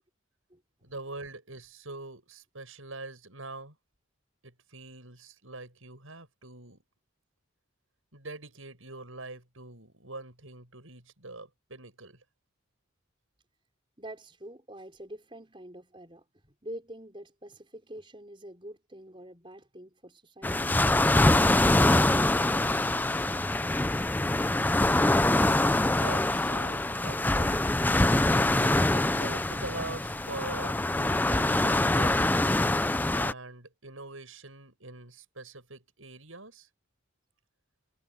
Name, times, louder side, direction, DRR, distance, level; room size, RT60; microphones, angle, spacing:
voice 1, 0.8-3.8 4.4-6.8 8.1-12.2 25.9-27.6 28.6-32.1 33.1-36.7, right 2 dB, 75° right, 7.6 m, -43 dB
voice 2, 14.0-20.8, right 1 dB, 25° right, 5.6 m, -46 dB
sound 1, 20.4-33.3, left 2 dB, 10° left, 0.4 m, -24 dB
head